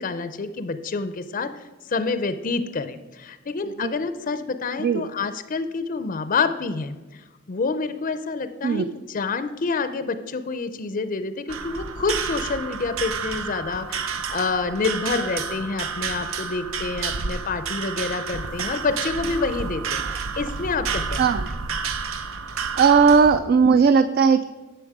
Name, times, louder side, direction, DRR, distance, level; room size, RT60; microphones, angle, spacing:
voice 1, 0.0-7.2 7.5-21.3, left 4 dB, 40° left, 11 dB, 0.5 m, -28 dB
sound 1, 11.5-23.4, right 5 dB, 85° right, 0.7 m, -30 dB
voice 2, 22.8-24.4, right 5 dB, 50° right, 12 dB, 0.3 m, -17 dB
11.0 x 6.9 x 4.7 m, 1.2 s
head